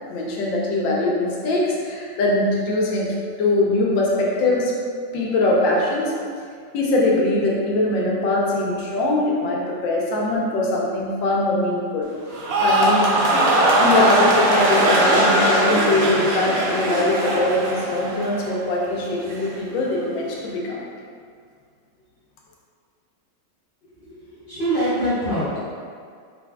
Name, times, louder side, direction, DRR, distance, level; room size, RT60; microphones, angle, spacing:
voice 1, 0.1-3.1 3.4-4.7 5.1-6.1 6.7-13.1 13.8-20.8, left 2 dB, 85° left, -3 dB, 1.5 m, -22 dB
sound 1, 12.3-18.6 18.9-19.4, right 1 dB, 85° right, 1.4 m, -20 dB
voice 2, 24.0-25.6, right 1 dB, 60° left, -11 dB, 0.5 m, -24 dB
4.8 x 3.4 x 2.2 m, 2.1 s
omnidirectional pair, 2.0 m